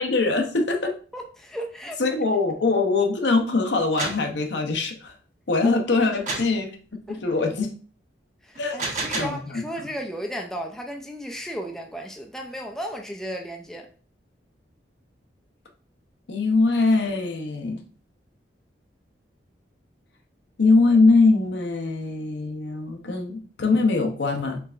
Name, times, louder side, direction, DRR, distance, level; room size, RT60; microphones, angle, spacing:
voice 1, 0.0-1.0 2.0-5.1 5.5-6.7 7.1-7.7 8.6-8.8 9.1-9.9 16.3-17.8 20.6-24.6, left 3 dB, 80° left, 3 dB, 0.7 m, -22 dB
voice 2, 1.1-2.0 5.6-6.1 7.1-7.2 8.4-13.9, equal, 5° left, 1 dB, 0.4 m, -34 dB
sound 1, 3.7-4.3 6.3-6.6 8.6-9.4, right 3 dB, 45° right, 1.0 m, -30 dB
4.5 x 3.3 x 2.5 m, 0.40 s
head